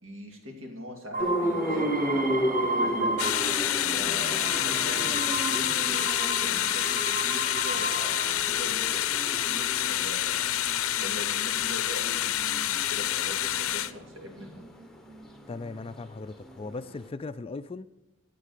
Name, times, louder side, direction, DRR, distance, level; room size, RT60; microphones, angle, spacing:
voice 1, 0.0-3.1 3.9-10.5 11.0-14.7, equal, 70° right, 2.7 m, -41 dB
sound 1, 1.1-3.7 4.0-8.6 9.3-9.9, right 2 dB, 40° right, 1.0 m, -34 dB
sound 2, 1.2-17.1, equal, ahead, 1.0 m, -35 dB
sound 3, 3.2-13.9, left 12 dB, 85° left, 0.6 m, -28 dB
voice 2, 15.5-17.9, left 3 dB, 25° left, 0.3 m, -38 dB
9.8 x 8.4 x 6.6 m
head